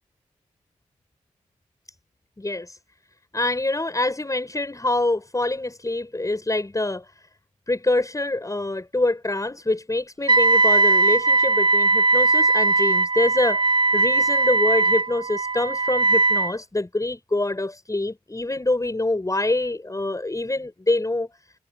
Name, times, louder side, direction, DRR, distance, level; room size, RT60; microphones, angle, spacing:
voice 1, 2.4-2.8 3.3-7.1 7.7-13.6 13.9-21.3, left 2 dB, 25° left, 7.3 m, -25 dB
Wind instrument woodwind instrument, 10.3-16.5, right 3 dB, 35° right, 4.7 m, -19 dB
supercardioid pair, 40°, 14 cm